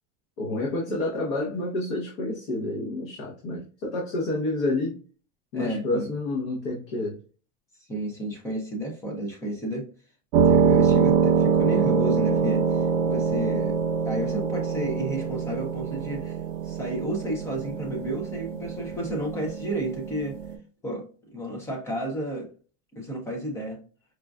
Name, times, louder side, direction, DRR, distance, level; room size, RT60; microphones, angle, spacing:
voice 1, 0.4-5.0 5.5-7.2, left 2 dB, 45° left, -2 dB, 1.0 m, -29 dB
voice 2, 5.5-6.0 7.9-9.9 10.4-13.8 14.1-16.4 16.6-20.4 20.8-21.1 21.3-22.5 23.0-23.8, right 1 dB, 5° left, 0 dB, 0.4 m, -31 dB
sound 1, 10.3-20.5, right 6 dB, 45° right, 0.6 m, -24 dB
4.9 x 2.4 x 2.2 m, 0.38 s
supercardioid pair, 165°, 38 cm